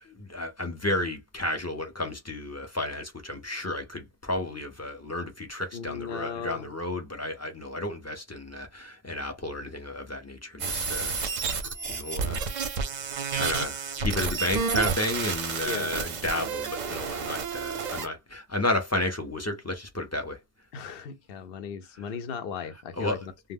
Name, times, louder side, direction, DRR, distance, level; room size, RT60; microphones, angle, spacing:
voice 1, 0.0-12.5 13.3-20.4 23.0-23.2, left 1 dB, 25° left, 0.4 m, -32 dB
voice 2, 5.7-6.7 15.6-16.0 20.7-23.2, left 6 dB, 70° left, 0.7 m, -36 dB
sound 1, 10.6-18.1, right 5 dB, 55° right, 0.6 m, -31 dB
2.1 x 2.1 x 3.4 m
omnidirectional pair, 1.1 m